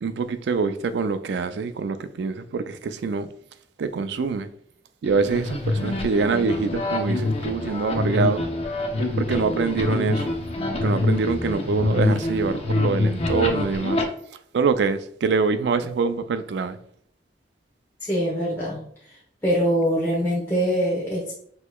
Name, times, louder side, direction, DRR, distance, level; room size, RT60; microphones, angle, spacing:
voice 1, 0.0-3.3 3.8-4.5 5.0-8.4 9.2-10.3 10.7-14.0 14.5-16.8, right 4 dB, 70° right, 0.4 m, -25 dB
sound 1, 5.0-14.0, left 2 dB, 35° left, 0.6 m, -25 dB
voice 2, 18.0-18.8 19.4-21.3, equal, 15° left, 0.9 m, -23 dB
6.2 x 3.0 x 2.3 m
head